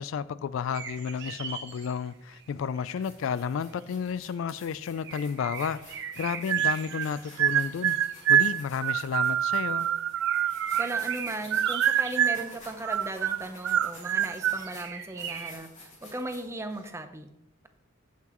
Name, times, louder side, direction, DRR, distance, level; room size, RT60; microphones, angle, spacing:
voice 1, 0.0-8.0 8.3-9.9, left 7 dB, 70° left, 0.3 m, -32 dB
sound 1, 0.7-2.5 2.8-4.5 5.0-8.7 10.1-13.3 13.6-15.5, right 7 dB, 60° right, 1.0 m, -42 dB
sound 2, 2.1-2.2 2.7-16.9, left 2 dB, 35° left, 2.8 m, -51 dB
sound 3, 6.5-7.1 7.4-11.2 11.5-12.5 12.8-14.6, right 10 dB, 80° right, 0.3 m, -25 dB
voice 2, 10.8-17.3, right 2 dB, 15° right, 0.6 m, -37 dB
15.0 x 5.9 x 3.0 m
head